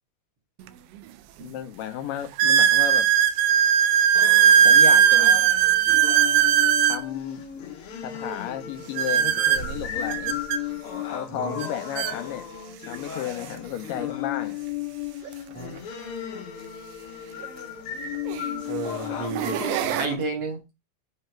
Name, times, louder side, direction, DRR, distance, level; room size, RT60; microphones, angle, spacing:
sound 1, 0.7-0.8 1.4-1.5 2.4-7.0 9.0-10.6 11.6-11.7 12.0-12.2 12.9-13.0 15.3-15.4 17.4-17.5 18.3-18.6 19.1-20.1, right 9 dB, 85° right, 2.2 m, -19 dB
voice 1, 1.4-3.1 4.6-5.3 6.8-7.4 8.0-10.4 11.1-12.5 12.9-14.6, left 10 dB, 85° left, 2.5 m, -33 dB
sound 2, 4.2-20.1, left 9 dB, 65° left, 1.4 m, -35 dB
voice 2, 18.7-19.6 19.9-20.6, right 3 dB, 55° right, 2.0 m, -31 dB
7.7 x 3.0 x 4.4 m
omnidirectional pair, 3.9 m